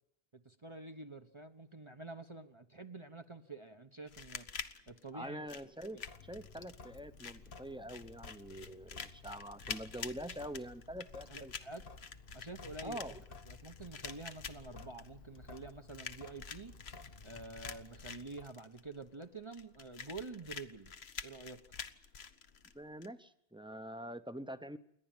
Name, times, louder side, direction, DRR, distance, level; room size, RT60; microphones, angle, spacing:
voice 1, 0.3-4.5 4.9-5.4 5.9-6.1 11.3-11.8 12.3-13.1 13.5-16.7 17.2-20.9 21.2-21.6, right 3 dB, 30° right, 6 dB, 1.1 m, -48 dB
sound 1, 4.1-23.1, left 6 dB, 85° left, 1.3 m, -48 dB
voice 2, 5.1-6.0 6.3-11.5 12.8-13.2 22.7-24.8, equal, 5° right, 11 dB, 0.8 m, -45 dB
Sink (filling or washing) / Drip, 6.0-18.5, left 4 dB, 60° left, 1.5 m, -54 dB
28.0 x 11.5 x 9.1 m, 0.74 s
omnidirectional pair, 1.0 m